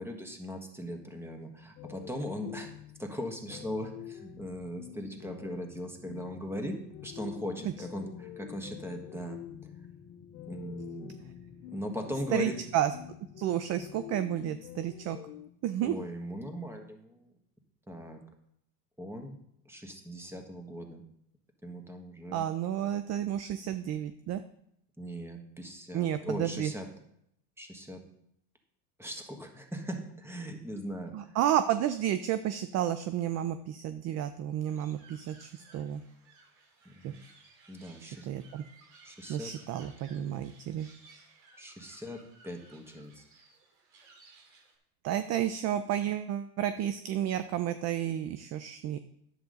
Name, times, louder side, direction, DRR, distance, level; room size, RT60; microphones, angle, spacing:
voice 1, 0.0-2.7 3.0-6.7 7.0-9.7 10.4-11.1 11.7-12.6 15.1-15.2 15.8-17.3 17.9-18.2 19.0-19.4 19.6-21.0 21.6-22.5 25.0-26.9 27.6-28.0 29.0-31.4 34.8-34.9 36.8-37.2 37.7-38.3 39.0-39.5 41.6-43.3, equal, 5° right, 4 dB, 1.6 m, -39 dB
sound 1, 1.8-15.5, left 14 dB, 70° left, 0.7 m, -48 dB
sound 2, 3.6-15.9 16.3-16.5, left 7 dB, 35° left, 1.1 m, -54 dB
voice 2, 12.3-12.9 13.4-15.2 15.6-16.1 22.3-24.4 25.9-26.7 31.1-36.0 37.0-37.1 38.0-38.6 39.3-40.9 45.0-49.0, right 11 dB, 35° right, 11 dB, 0.4 m, -31 dB
sound 3, 34.6-44.8, right 4 dB, 80° right, 3.8 m, -59 dB
10.5 x 8.2 x 3.9 m, 0.74 s
supercardioid pair, 110°, 49 cm